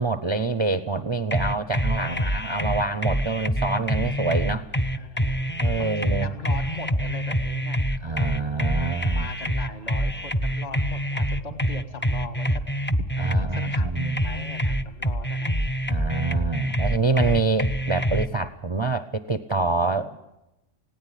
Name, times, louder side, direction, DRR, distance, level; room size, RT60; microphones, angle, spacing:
voice 1, 0.0-4.7 5.6-6.3 8.0-9.3 13.2-14.2 15.9-20.2, right 3 dB, 30° right, 11 dB, 0.6 m, -26 dB
sound 1, 1.3-18.3, equal, 15° left, 0.3 m, -26 dB
voice 2, 2.0-2.3 4.9-7.8 8.8-12.6 13.3-15.5 16.3-16.7, left 3 dB, 50° left, 7 dB, 2.5 m, -39 dB
19.0 x 17.0 x 9.9 m, 0.93 s
omnidirectional pair, 1.4 m